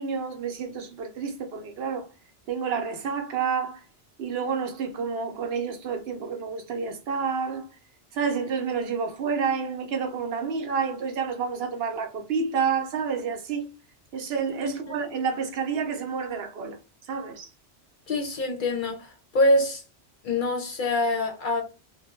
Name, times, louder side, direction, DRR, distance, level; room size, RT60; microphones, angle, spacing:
voice 1, 0.0-2.1 2.5-3.8 4.2-7.7 8.1-13.7 14.1-16.8 17.1-17.5, right 6 dB, 70° right, 0.8 m, -29 dB
voice 2, 18.1-19.8 20.2-21.6, left 1 dB, 55° left, 0.7 m, -25 dB
2.5 x 2.1 x 2.9 m
omnidirectional pair, 1.1 m